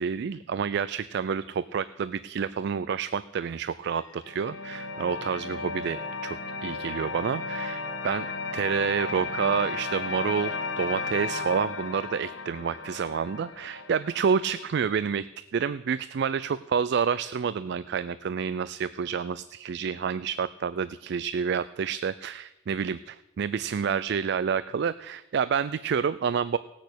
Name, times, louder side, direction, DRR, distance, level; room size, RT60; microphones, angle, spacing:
voice 1, 0.0-15.3 15.5-26.6, right 6 dB, 60° right, 15 dB, 0.4 m, -29 dB
sound 1, 3.8-14.9, left 4 dB, 75° left, 1.2 m, -35 dB
17.5 x 6.4 x 8.2 m, 1.0 s
head